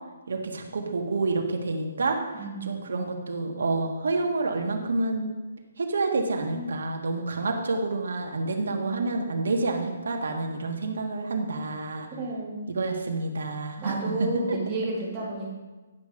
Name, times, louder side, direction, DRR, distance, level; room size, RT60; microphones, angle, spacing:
voice 1, 0.3-5.3 5.8-12.1 12.7-14.6, right 3 dB, 75° right, 3 dB, 1.5 m, -28 dB
voice 2, 2.3-2.9 6.5-6.7 8.6-9.1 12.2-12.7 13.8-15.5, right 2 dB, 15° right, -7 dB, 2.2 m, -32 dB
10.5 x 5.6 x 5.0 m, 1.2 s
hypercardioid pair, 170°, 0 cm